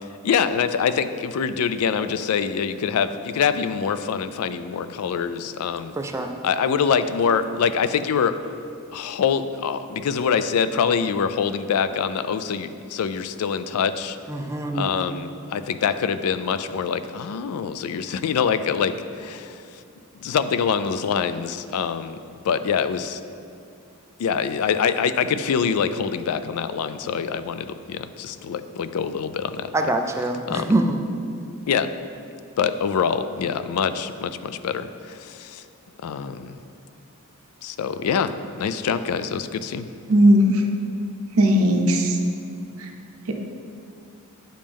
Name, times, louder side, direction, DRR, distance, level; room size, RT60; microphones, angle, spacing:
voice 1, 0.2-5.9 6.4-8.4 8.9-14.2 14.7-19.6 20.2-22.2 22.4-23.2 24.2-29.7 30.5-30.7 31.7-31.9 32.6-35.6 36.0-36.6 37.6-39.9, left 6 dB, 75° left, 12 dB, 0.3 m, -25 dB
voice 2, 6.0-6.3 14.3-14.9 29.7-31.0, right 2 dB, 15° right, 3 dB, 0.4 m, -24 dB
voice 3, 40.1-40.6 41.3-42.2 42.8-42.9 43.3-43.4, equal, 65° right, 4 dB, 0.7 m, -17 dB
8.8 x 5.3 x 3.4 m, 2.4 s
head